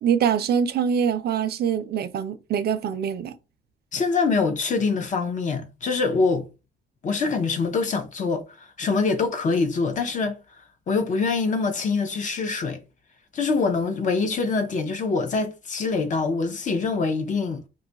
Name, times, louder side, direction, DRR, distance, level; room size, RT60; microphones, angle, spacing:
voice 1, 0.0-3.3, right 7 dB, 60° right, 0.4 m, -24 dB
voice 2, 3.9-6.5 7.0-10.4 10.9-12.8 13.3-17.6, left 4 dB, 45° left, 0.5 m, -24 dB
2.6 x 2.3 x 3.9 m
cardioid pair, 150°, 19 cm